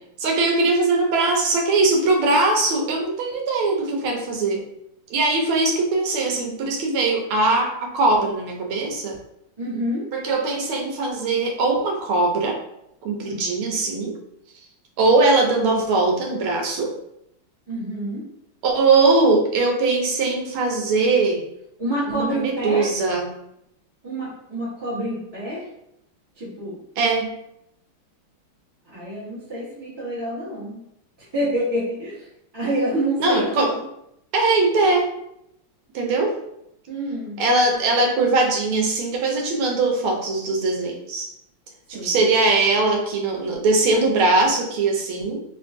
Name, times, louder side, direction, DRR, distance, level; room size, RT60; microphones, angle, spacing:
voice 1, 0.2-4.6 5.1-9.2 10.1-12.6 13.0-14.2 15.0-17.0 18.6-21.4 22.1-23.3 27.0-27.3 33.2-33.8 34.3-35.1 35.9-36.4 37.4-41.3 41.9-45.4, right 3 dB, 80° right, 1 dB, 1.5 m, -21 dB
voice 2, 9.6-10.1 13.2-13.8 17.7-18.2 21.8-22.9 24.0-25.7 26.4-26.8 28.9-30.8 31.3-32.3 32.5-33.8 36.9-37.4 41.9-42.2, right 1 dB, 20° right, -10 dB, 0.8 m, -27 dB
3.4 x 3.0 x 2.6 m, 0.79 s
omnidirectional pair, 2.4 m